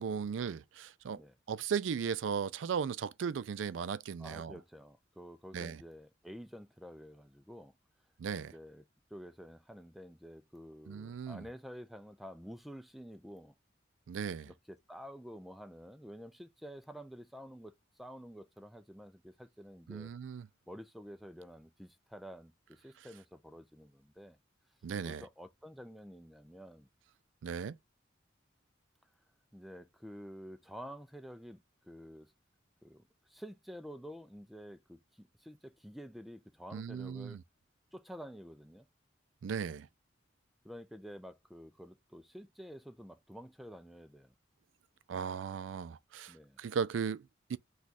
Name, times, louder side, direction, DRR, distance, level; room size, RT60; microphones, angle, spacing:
voice 1, 0.0-1.2 1.5-4.5 5.5-5.8 8.2-8.5 10.9-11.5 14.1-14.5 19.9-20.5 24.8-25.2 27.4-27.8 36.7-37.4 39.4-39.9 45.1-47.6, right 6 dB, 75° right, 0.4 m, -37 dB
voice 2, 4.2-7.7 8.4-8.8 9.1-13.5 14.4-20.1 20.7-24.4 25.0-26.9 29.5-32.3 32.8-37.4 37.9-38.9 40.6-44.3 46.3-46.6, equal, ahead, 0.3 m, -50 dB
4.1 x 2.4 x 4.5 m
head